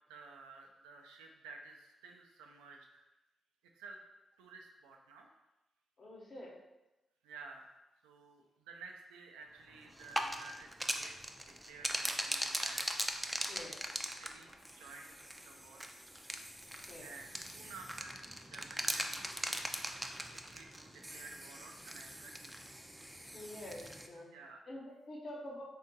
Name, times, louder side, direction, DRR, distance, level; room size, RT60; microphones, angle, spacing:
voice 1, 0.1-3.1 3.7-4.0 4.4-5.3 7.2-7.7 8.0-11.1 11.6-12.8 13.4-13.6 14.2-15.9 17.0-19.6 20.1-22.5 24.3-24.6, right 4 dB, 85° right, 2 dB, 0.3 m, -53 dB
voice 2, 6.0-6.5 13.5-13.8 16.9-17.1 23.3-24.3 24.7-25.6, left 1 dB, 55° left, -4 dB, 0.9 m, -47 dB
sound 1, 9.9-24.1, equal, 10° right, 0.3 m, -40 dB
3.5 x 2.3 x 2.7 m, 1.0 s
hypercardioid pair, 40°, 0 cm